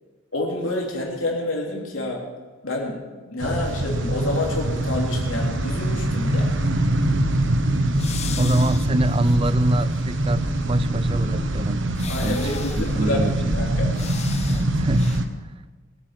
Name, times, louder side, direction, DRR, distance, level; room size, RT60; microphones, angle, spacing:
voice 1, 0.3-2.3 2.6-3.0 3.2-6.5 12.1-14.0, left 1 dB, 70° left, -1 dB, 3.4 m, -28 dB
sound 1, 3.4-15.3, right 1 dB, 60° right, 1.2 m, -24 dB
sound 2, 8.0-10.0 10.4-10.5 12.0-13.0 13.9-14.7 14.9-15.2, left 8 dB, 30° left, 0.7 m, -37 dB
voice 2, 8.4-11.9 12.2-12.5 12.9-13.9 14.4-15.2, right 1 dB, 25° right, 15 dB, 0.5 m, -24 dB
20.5 x 8.8 x 6.1 m, 1.3 s
head